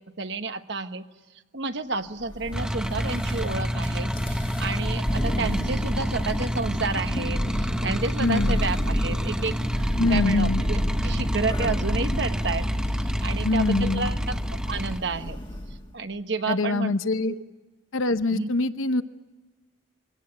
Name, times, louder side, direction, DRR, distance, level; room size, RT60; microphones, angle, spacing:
voice 1, 0.2-1.0 1.5-12.7 12.9-15.4 15.9-17.0 17.2-17.4 18.3-18.5, right 4 dB, 60° right, 9 dB, 1.2 m, -31 dB
Thunder, 2.3-15.9, equal, 25° left, 1.7 m, -30 dB
sound 1, 2.5-15.0, equal, 5° right, 0.9 m, -29 dB
voice 2, 8.2-8.6 10.0-10.6 13.4-14.1 16.5-17.3 17.9-19.0, left 2 dB, 85° left, 11 dB, 0.9 m, -24 dB
24.5 x 17.5 x 9.7 m, 1.2 s
head